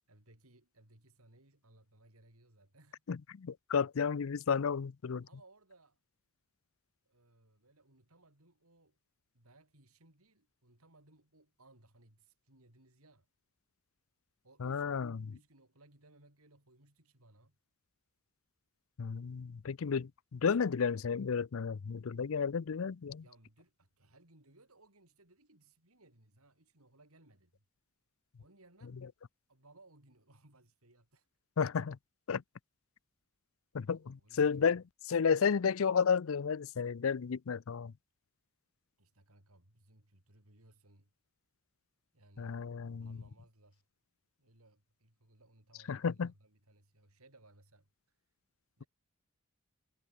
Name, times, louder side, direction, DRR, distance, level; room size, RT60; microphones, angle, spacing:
voice 1, 0.1-3.0 5.2-6.0 7.0-9.0 9.3-13.3 14.4-17.6 23.2-27.6 28.4-29.1 29.5-31.3 33.8-34.6 39.0-41.1 42.1-42.7 43.0-43.8 44.4-47.9 48.8-48.9, right 2 dB, 90° right, 6.0 m, -64 dB
voice 2, 3.1-5.3 14.6-15.3 19.0-23.2 31.6-32.0 32.3-32.4 33.7-37.9 42.4-43.2 45.9-46.3, left 6 dB, 70° left, 0.5 m, -32 dB
head